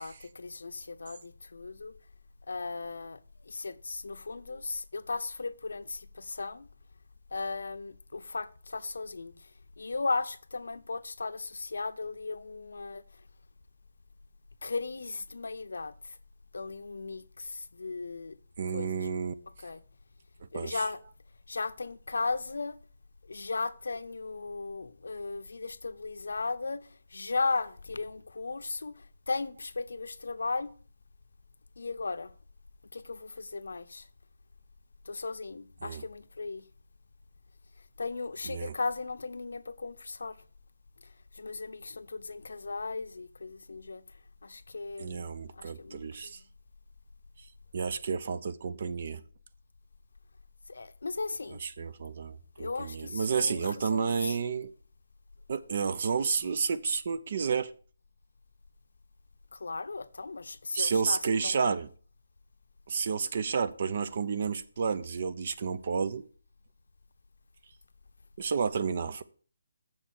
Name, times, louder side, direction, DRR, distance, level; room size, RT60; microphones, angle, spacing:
voice 1, 0.0-1.9 2.5-6.7 7.3-9.5 9.8-13.0 14.6-16.2 16.5-18.4 18.7-19.1 19.6-19.8 20.5-21.0 21.5-22.8 23.3-30.7 31.8-32.3 32.9-34.1 35.0-36.6 38.0-40.4 41.3-44.0 44.4-46.3 50.7-51.6 52.6-54.4 59.5-61.8, left 3 dB, 80° left, 0.7 m, -36 dB
voice 2, 18.6-19.3 20.5-20.8 35.8-36.0 38.5-38.7 45.0-46.4 47.7-49.2 51.6-54.7 55.5-57.7 60.7-61.9 62.9-66.3 68.4-69.2, right 5 dB, 45° right, 0.7 m, -31 dB
7.4 x 6.4 x 6.3 m
hypercardioid pair, 165°, 0 cm